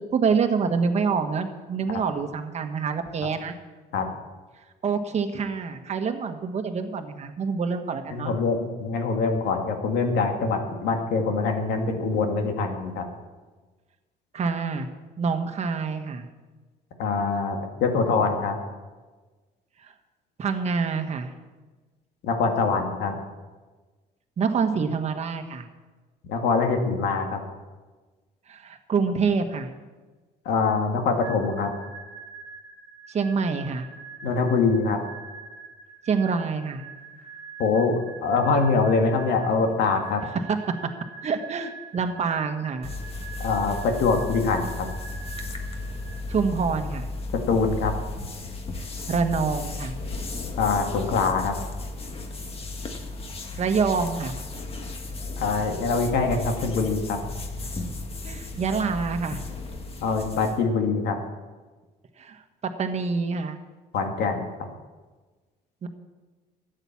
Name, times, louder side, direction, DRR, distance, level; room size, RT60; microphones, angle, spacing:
voice 1, 0.1-3.5 4.8-8.3 14.3-14.9 15.2-16.3 20.4-21.3 24.4-25.7 28.5-29.7 33.1-33.9 36.1-36.8 40.7-40.8 41.2-42.9 46.3-47.1 49.1-49.9 53.6-54.3 58.2-59.4 62.2-63.6 65.8-65.9, right 5 dB, 40° right, 6 dB, 1.4 m, -26 dB
voice 2, 8.1-13.1 17.0-18.6 22.2-23.2 26.3-27.4 30.5-31.7 34.2-35.0 37.6-40.2 43.4-44.9 47.5-47.9 50.6-51.5 55.4-57.2 60.0-61.2 63.9-64.5, left 4 dB, 80° left, 4 dB, 2.1 m, -24 dB
sound 1, 31.2-46.8, right 4 dB, 5° left, 2.7 m, -44 dB
sound 2, 42.8-60.6, left 2 dB, 35° left, 1.6 m, -35 dB
13.0 x 9.0 x 7.2 m, 1.3 s
cardioid pair, 110°, 17 cm